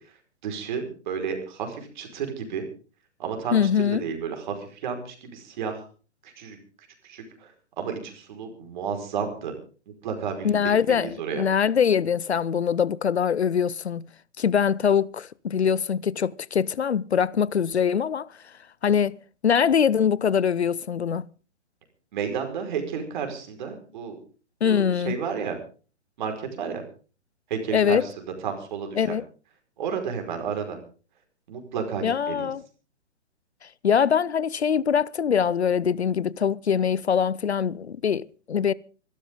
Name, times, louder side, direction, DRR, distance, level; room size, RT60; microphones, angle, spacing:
voice 1, 0.4-2.7 3.2-5.8 6.2-6.6 7.0-9.5 10.0-11.4 22.1-24.2 24.6-25.6 26.2-26.8 27.5-29.2 29.8-30.8 31.5-32.5, right 6 dB, 40° right, 5.0 m, -32 dB
voice 2, 3.5-4.1 10.4-14.1 14.4-18.3 18.8-19.2 19.4-21.3 24.6-25.2 27.7-28.1 29.0-29.2 32.0-32.6 33.8-38.7, left 7 dB, 65° left, 0.7 m, -23 dB
25.0 x 13.0 x 3.7 m
figure-of-eight pair, 125°, 35 cm